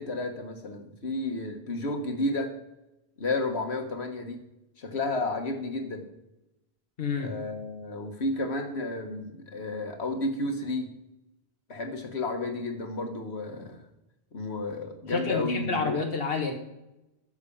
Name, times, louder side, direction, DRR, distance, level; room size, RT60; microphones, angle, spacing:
voice 1, 0.0-2.5 3.2-4.4 4.8-6.0 7.2-10.9 11.7-13.8 14.3-16.0, left 2 dB, 90° left, 4 dB, 1.9 m, -32 dB
voice 2, 7.0-7.3 15.1-16.5, left 4 dB, 65° left, 3 dB, 1.6 m, -29 dB
14.0 x 5.1 x 7.1 m, 0.93 s
omnidirectional pair, 1.1 m